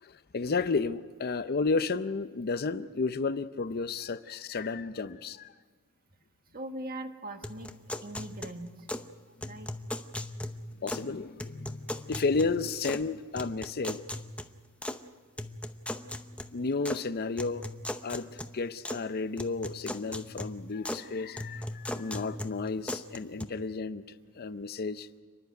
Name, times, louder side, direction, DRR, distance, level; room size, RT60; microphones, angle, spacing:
voice 1, 0.0-5.5 10.8-14.0 16.5-17.6 18.0-24.0 24.3-25.1, left 4 dB, 45° left, 12 dB, 0.6 m, -32 dB
voice 2, 6.5-7.7 8.0-8.7 9.4-9.7, right 1 dB, 40° right, 5 dB, 1.6 m, -40 dB
sound 1, 7.4-9.1 9.4-11.1 11.4-13.1 13.4-15.0 15.4-17.0 17.4-19.1 19.4-21.1 21.4-23.4, left 1 dB, 5° left, 0.7 m, -39 dB
29.5 x 11.0 x 9.2 m, 1.5 s
head